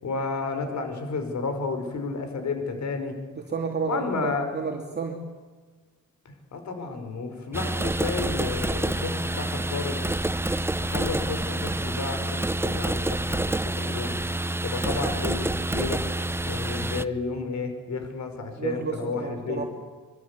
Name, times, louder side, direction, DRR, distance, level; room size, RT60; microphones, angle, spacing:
voice 1, 0.0-3.2 3.8-4.6 6.3-10.0 10.8-14.2 14.6-16.0 16.5-19.7, left 4 dB, 60° left, 7 dB, 5.3 m, -31 dB
voice 2, 3.4-5.2 18.6-19.6, right 5 dB, 30° right, 1 dB, 2.9 m, -31 dB
sound 1, 7.5-17.0, right 1 dB, 5° right, 0.7 m, -28 dB
25.5 x 23.5 x 8.5 m, 1.4 s
wide cardioid pair, 150°, 32 cm